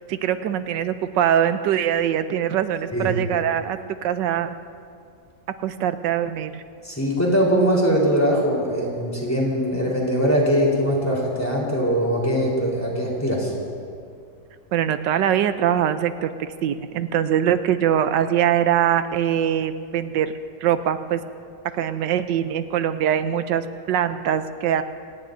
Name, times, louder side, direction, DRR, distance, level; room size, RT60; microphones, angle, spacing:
voice 1, 0.1-4.5 5.6-6.6 14.7-20.3 20.6-21.2 21.7-24.8, right 10 dB, 85° right, 10 dB, 1.3 m, -22 dB
voice 2, 6.8-13.5, equal, 10° left, -4 dB, 3.9 m, -21 dB
28.0 x 18.5 x 2.7 m, 2.3 s
omnidirectional pair, 1.9 m